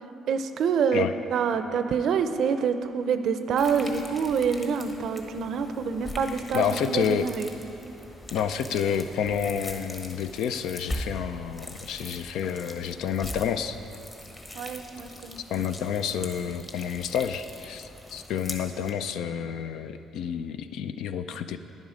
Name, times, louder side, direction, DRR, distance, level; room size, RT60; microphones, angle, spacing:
voice 1, 0.3-7.5 14.5-15.6, right 6 dB, 65° right, 10 dB, 0.5 m, -27 dB
sound 1, 3.6-18.9, left 1 dB, 25° left, 1.1 m, -41 dB
voice 2, 6.5-7.3 8.3-13.8 15.5-21.6, left 8 dB, 75° left, 10 dB, 0.4 m, -29 dB
10.5 x 7.3 x 5.0 m, 2.9 s
cardioid pair, 90°, 0 cm